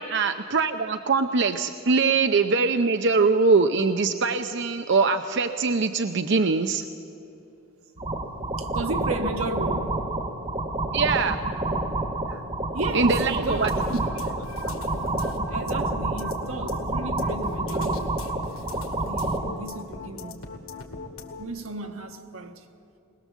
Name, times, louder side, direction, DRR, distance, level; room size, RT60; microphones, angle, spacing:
voice 1, 0.0-6.8 10.9-11.4 12.9-13.7, right 4 dB, 55° right, 0.6 m, -22 dB
sound 1, 8.0-19.5, right 2 dB, 25° right, 1.4 m, -28 dB
voice 2, 8.6-10.0 12.3-12.5 12.7-13.7 14.6-14.8 15.5-18.2 19.1-20.5 21.4-22.7, right 2 dB, 85° right, 1.5 m, -34 dB
sound 2, 13.4-21.4, left 2 dB, 85° left, 2.2 m, -39 dB
21.0 x 20.5 x 7.3 m
head